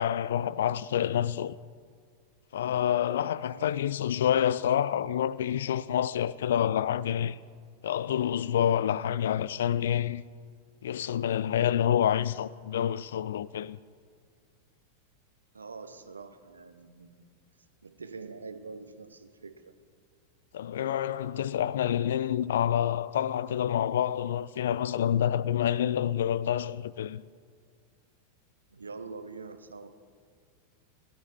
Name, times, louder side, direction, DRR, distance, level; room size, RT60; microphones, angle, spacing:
voice 1, 0.0-1.6 2.5-7.4 7.8-10.2 10.8-13.8 20.5-27.2, left 10 dB, 60° left, 0.3 m, -28 dB
voice 2, 3.5-3.8 15.5-17.3 17.8-19.7 28.7-29.9, right 4 dB, 75° right, 0.7 m, -44 dB
17.0 x 10.5 x 4.6 m
figure-of-eight pair, 90°, 0 cm